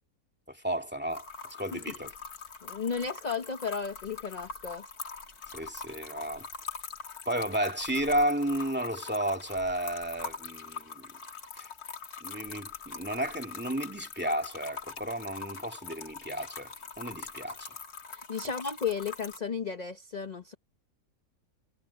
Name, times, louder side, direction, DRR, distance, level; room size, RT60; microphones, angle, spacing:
voice 1, 0.5-2.1 5.5-6.5 7.3-11.1 11.6-11.7 12.2-17.8, right 1 dB, 5° right, 2.3 m, -33 dB
sound 1, 1.1-19.4, left 5 dB, 80° left, 2.4 m, -43 dB
voice 2, 2.6-4.8 18.1-20.5, left 6 dB, 30° left, 1.0 m, -34 dB
omnidirectional pair, 1.6 m